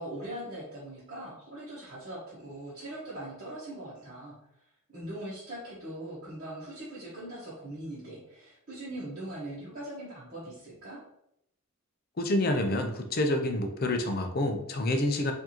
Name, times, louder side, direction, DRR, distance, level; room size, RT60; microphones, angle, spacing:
voice 1, 0.0-4.3 4.9-11.0, right 1 dB, 40° right, -11 dB, 1.2 m, -41 dB
voice 2, 12.2-15.3, left 1 dB, 45° left, 5 dB, 0.5 m, -28 dB
4.5 x 2.7 x 2.9 m, 0.75 s
head